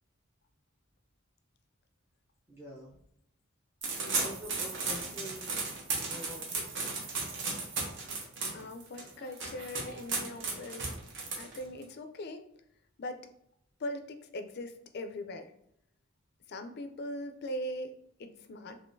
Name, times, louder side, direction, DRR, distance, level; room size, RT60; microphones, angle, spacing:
voice 1, 2.5-3.0 4.1-5.6 5.9-6.9, equal, 10° right, -8 dB, 0.6 m, -46 dB
sound 1, 3.8-11.8, right 4 dB, 60° right, 0.8 m, -35 dB
voice 2, 8.5-10.9 11.4-12.5 13.0-13.3 13.8-15.5 16.5-18.8, left 1 dB, 50° left, 7 dB, 0.4 m, -40 dB
3.6 x 3.0 x 2.6 m, 0.75 s
head